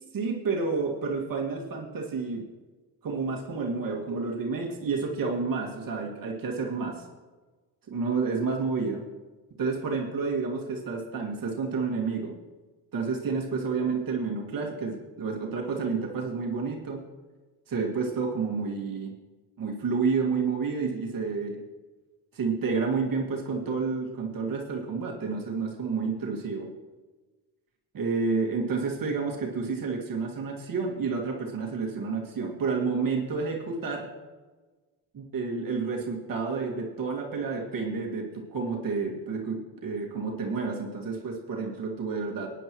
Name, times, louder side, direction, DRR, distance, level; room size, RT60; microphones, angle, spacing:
voice 1, 0.1-2.5 3.0-7.1 7.9-9.0 9.6-12.3 12.9-17.0 17.7-19.1 19.6-21.6 22.3-26.7 27.9-34.1 35.1-42.5, right 4 dB, 50° right, 0 dB, 2.1 m, -30 dB
18.0 x 10.0 x 3.1 m, 1.3 s
cardioid pair, 105°, 43 cm